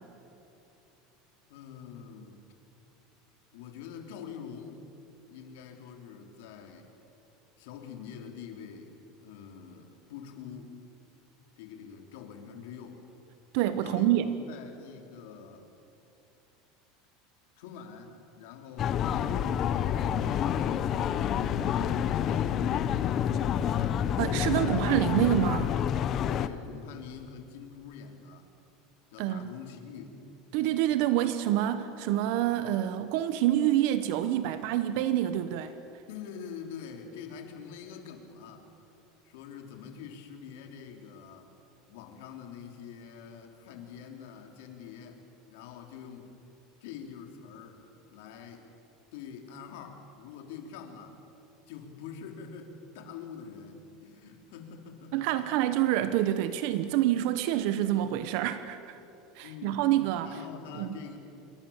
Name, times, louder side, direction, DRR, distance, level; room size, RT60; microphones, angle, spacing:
voice 1, 1.5-2.4 3.5-4.8 5.3-6.9 7.6-9.0 9.2-10.8 11.6-13.0 13.8-15.7 17.6-20.0 20.6-22.8 23.1-24.1 26.3-28.5 29.1-30.2 36.1-38.7 39.2-41.5 41.9-46.3 46.8-47.8 48.1-48.7 49.1-51.2 51.7-55.4 59.4-59.9 60.2-61.2, left 7 dB, 70° left, 4 dB, 3.4 m, -45 dB
voice 2, 13.5-14.3 24.2-25.7 29.2-29.5 30.5-35.7 55.1-59.0 59.4-60.3 60.7-61.0, right 12 dB, 55° right, 11 dB, 1.0 m, -27 dB
sound 1, 18.8-26.5, left 9 dB, 30° left, 0.7 m, -28 dB
27.0 x 23.0 x 7.3 m, 2.8 s
supercardioid pair, 165°, 0 cm